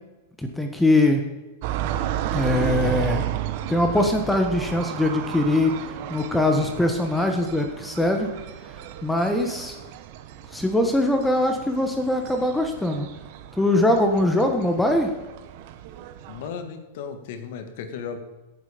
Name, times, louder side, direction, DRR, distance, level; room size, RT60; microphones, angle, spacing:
voice 1, 0.4-1.2 2.3-3.2 3.7-5.7 6.1-8.3 9.0-9.7 10.5-13.2 13.5-15.1, left 1 dB, 5° left, 4 dB, 1.3 m, -22 dB
sound 1, 1.6-16.5, right 12 dB, 55° right, 1.0 m, -33 dB
voice 2, 16.3-18.2, left 6 dB, 65° left, 8 dB, 1.9 m, -35 dB
16.5 x 7.7 x 5.2 m, 1.1 s
hypercardioid pair, 120°, 0 cm